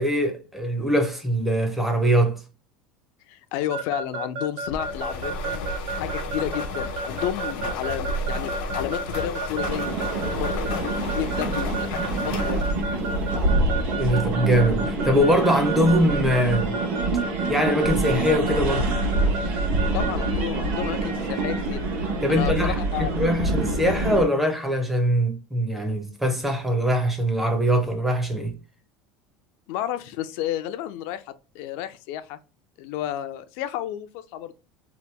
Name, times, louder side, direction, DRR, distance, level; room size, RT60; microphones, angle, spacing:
voice 1, 0.0-2.4 13.9-16.8 17.5-18.9 22.2-28.5, equal, 5° right, 0.5 m, -22 dB
voice 2, 3.3-10.0 10.3-12.7 19.9-21.8 22.3-23.2 29.7-32.4 32.8-34.5, left 12 dB, 60° left, 0.4 m, -32 dB
Keyboard (musical) / Alarm, 3.7-20.3, right 5 dB, 85° right, 0.5 m, -31 dB
sound 1, 4.7-14.0, left 2 dB, 85° left, 0.9 m, -32 dB
sound 2, 9.6-24.2, right 2 dB, 55° right, 1.0 m, -26 dB
2.8 x 2.2 x 3.2 m
cardioid pair, 160°, 5 cm